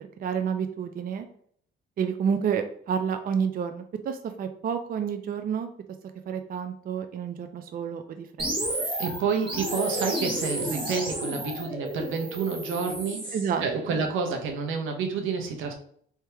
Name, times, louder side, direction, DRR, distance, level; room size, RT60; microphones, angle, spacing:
voice 1, 0.2-1.3 2.0-5.7 6.3-8.5 13.3-14.0, right 7 dB, 45° right, 7 dB, 0.5 m, -29 dB
sound 1, 8.4-13.5, right 1 dB, 25° right, 1.6 m, -31 dB
voice 2, 9.0-15.7, right 5 dB, 90° right, 3 dB, 0.9 m, -29 dB
3.5 x 2.8 x 4.4 m, 0.62 s
cardioid pair, 90°, 20 cm